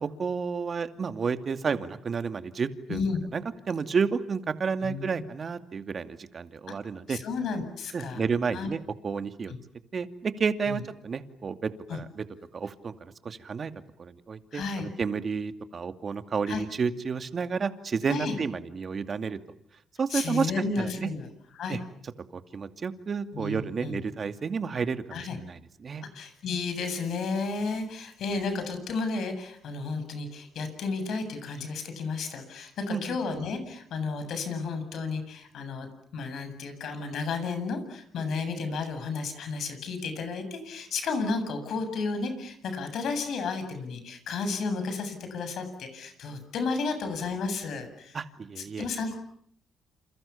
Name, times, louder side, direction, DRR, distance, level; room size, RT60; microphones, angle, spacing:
voice 1, 0.0-3.0 3.3-7.2 7.9-9.5 9.9-12.2 12.5-13.7 14.0-19.4 20.0-20.5 20.8-21.1 21.7-21.8 22.3-26.0 32.9-33.2 48.1-48.9, right 5 dB, 45° right, 9 dB, 2.4 m, -31 dB
voice 2, 2.9-3.2 4.8-5.1 6.7-6.8 7.1-8.2 8.5-8.7 9.5-9.6 10.7-10.8 11.9-12.0 14.5-14.9 16.5-16.6 18.1-18.4 20.1-21.3 21.6-21.8 23.3-24.0 25.1-25.4 26.1-48.2 48.6-49.1, left 4 dB, 70° left, 8 dB, 7.9 m, -32 dB
29.0 x 28.0 x 7.2 m, 0.67 s
cardioid pair, 90°, 0 cm